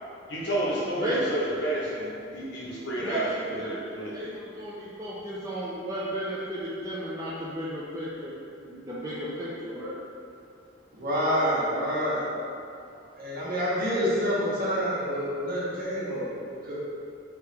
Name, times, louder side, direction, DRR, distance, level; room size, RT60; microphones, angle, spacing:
voice 1, 0.3-4.2, right 1 dB, 65° left, -6 dB, 0.9 m, -30 dB
voice 2, 3.6-8.3 8.6-10.0, equal, 20° right, -8 dB, 0.4 m, -34 dB
voice 3, 10.9-12.3 12.9-16.7, equal, 50° right, -8 dB, 1.0 m, -28 dB
3.5 x 2.9 x 3.3 m, 2.5 s
head